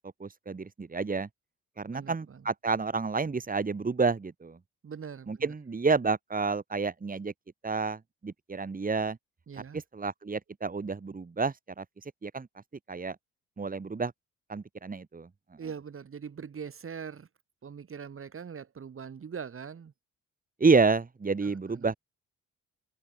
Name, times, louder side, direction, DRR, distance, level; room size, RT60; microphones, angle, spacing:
voice 1, 0.2-1.3 1.8-4.6 5.3-7.3 7.6-9.2 9.7-11.8 12.2-12.5 12.9-13.2 13.6-14.1 14.5-15.3 20.6-22.0, right 4 dB, 30° right, 4.6 m, -29 dB
voice 2, 1.9-2.4 4.8-5.5 9.5-9.8 15.6-17.3 17.6-19.9 21.4-21.9, right 6 dB, 45° right, 6.1 m, -42 dB
open air
cardioid pair, 90°, 30 cm